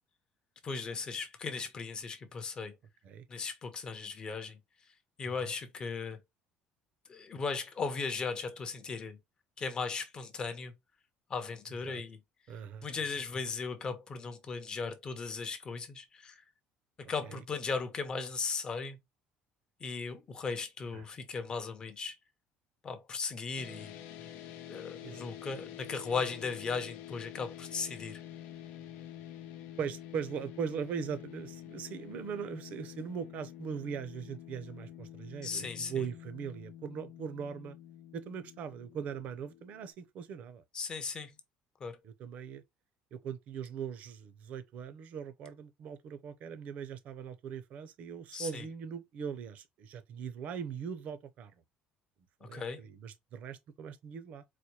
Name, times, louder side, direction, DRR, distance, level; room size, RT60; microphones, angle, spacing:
voice 1, 0.6-2.8 3.3-4.6 5.2-6.2 7.1-9.2 9.6-10.7 11.3-12.2 12.8-16.4 17.1-19.0 19.8-22.1 22.8-24.0 24.7-28.2 35.4-36.0 40.7-41.4 41.8-42.0 48.3-48.6 52.4-52.9, left 4 dB, 25° left, 0.7 m, -37 dB
voice 2, 12.5-12.9 17.3-17.4 20.9-21.0 25.0-25.2 29.8-37.8 38.1-40.6 42.0-42.6 43.1-51.5 52.4-54.4, right 7 dB, 50° right, 0.6 m, -40 dB
sound 1, 23.6-39.9, left 11 dB, 80° left, 0.7 m, -48 dB
4.3 x 2.1 x 3.0 m
cardioid pair, 160°, 3 cm